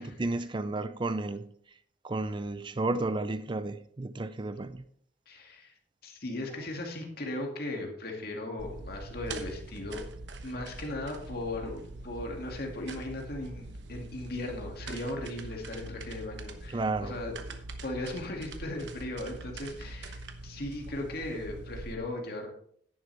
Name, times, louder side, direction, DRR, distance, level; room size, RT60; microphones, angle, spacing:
voice 1, 0.0-1.6 2.0-4.8 16.7-17.2, right 2 dB, 25° right, 0.5 m, -32 dB
voice 2, 5.3-5.7 6.0-10.0 10.4-22.5, left 1 dB, 55° left, 2.3 m, -37 dB
sound 1, 8.6-21.9, right 2 dB, 70° right, 1.0 m, -43 dB
11.0 x 9.9 x 3.4 m
head